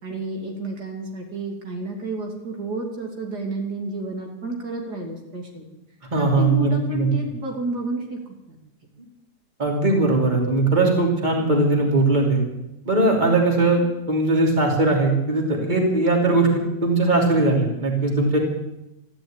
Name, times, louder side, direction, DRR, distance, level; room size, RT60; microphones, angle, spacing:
voice 1, 0.0-5.6 6.1-8.2 8.5-8.6, right 1 dB, 75° right, 1 dB, 3.3 m, -30 dB
voice 2, 6.1-7.1 9.6-12.4 12.8-18.4, right 2 dB, 25° right, 0 dB, 3.2 m, -20 dB
14.0 x 11.5 x 8.9 m, 0.88 s
omnidirectional pair, 1.8 m